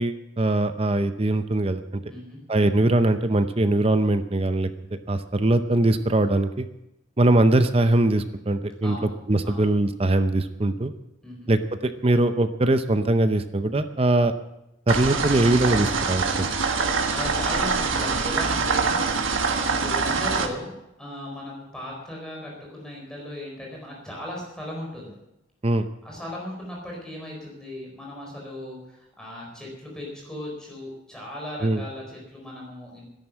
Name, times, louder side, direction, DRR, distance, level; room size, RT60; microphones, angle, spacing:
voice 1, 0.0-1.8 2.5-4.7 5.1-6.7 7.2-9.0 9.3-10.9 11.5-14.3 14.9-16.2 25.6-25.8 31.6-31.8, right 2 dB, 30° right, 10 dB, 0.6 m, -21 dB
voice 2, 2.1-2.4 8.8-9.1 9.4-9.7 11.2-11.5 16.8-25.2 26.0-33.1, left 1 dB, 5° left, -3 dB, 4.4 m, -37 dB
sound 1, 14.9-20.5, right 4 dB, 85° right, 1.4 m, -24 dB
13.0 x 10.5 x 7.5 m, 0.89 s
head